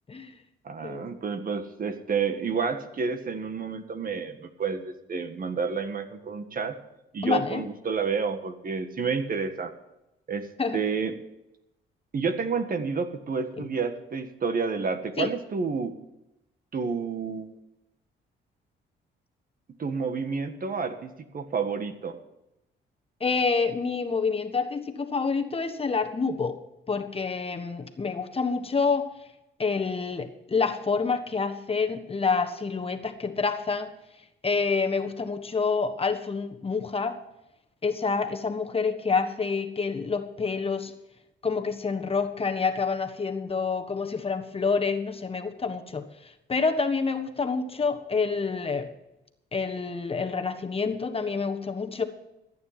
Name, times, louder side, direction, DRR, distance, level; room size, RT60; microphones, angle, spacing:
voice 1, 0.6-6.8 7.1-9.7 10.3-10.5 10.7-11.2 12.1-15.9 16.7-17.5 19.8-22.2, right 5 dB, 45° right, 8 dB, 1.7 m, -30 dB
voice 2, 7.2-7.6 10.6-10.8 15.2-15.3 23.2-26.6 26.9-29.1 29.6-33.9 34.4-37.2 37.8-40.9 41.4-46.0 46.5-48.9 49.5-52.0, left 4 dB, 30° left, 6 dB, 1.4 m, -27 dB
15.0 x 9.3 x 5.9 m, 0.89 s
cardioid pair, 90°, 20 cm